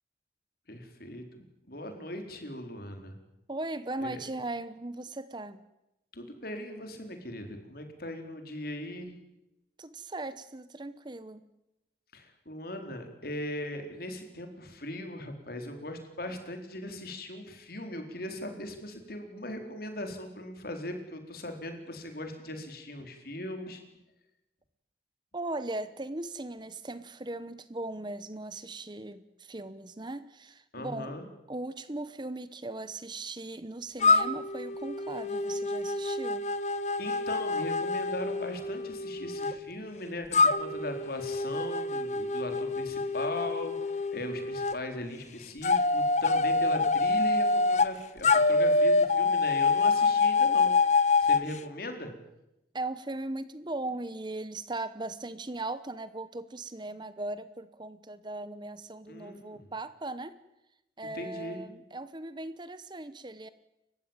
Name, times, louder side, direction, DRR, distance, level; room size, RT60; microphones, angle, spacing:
voice 1, 0.7-3.1 4.0-4.2 6.1-9.2 12.1-23.8 30.7-31.3 37.0-50.7 51.2-52.1 59.1-59.7 61.1-61.6, left 1 dB, 55° left, 5 dB, 4.3 m, -39 dB
voice 2, 3.5-5.6 9.8-11.4 25.3-31.2 31.5-36.4 52.7-60.3 61.0-63.5, right 2 dB, 25° right, 14 dB, 0.9 m, -38 dB
sound 1, 34.0-39.5 40.3-44.8 45.6-47.9 48.2-51.5, left 3 dB, 40° left, 1.0 m, -26 dB
30.0 x 15.5 x 9.0 m, 0.90 s
head